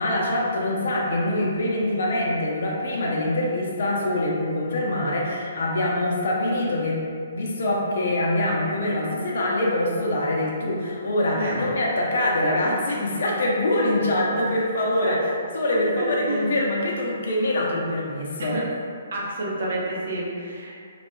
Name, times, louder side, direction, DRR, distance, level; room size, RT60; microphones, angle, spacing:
voice 1, 0.0-7.0 7.3-15.2 15.5-18.6, left 1 dB, 65° left, -3 dB, 0.5 m, -24 dB
voice 2, 11.4-11.7 12.2-12.6 15.0-15.2 16.0-16.5 18.4-18.7 19.1-20.7, right 1 dB, 65° right, -4 dB, 0.6 m, -29 dB
2.2 x 2.0 x 3.0 m, 2.3 s
hypercardioid pair, 135°, 0 cm